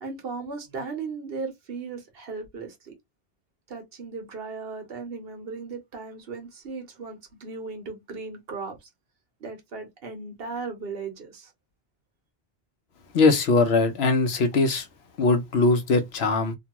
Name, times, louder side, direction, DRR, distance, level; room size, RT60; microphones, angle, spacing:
voice 1, 0.0-2.9 3.7-8.9 9.4-11.5, right 4 dB, 70° right, 1.1 m, -37 dB
voice 2, 13.1-14.9 15.2-16.6, left 3 dB, 80° left, 1.0 m, -21 dB
2.9 x 2.3 x 2.9 m
omnidirectional pair, 1.0 m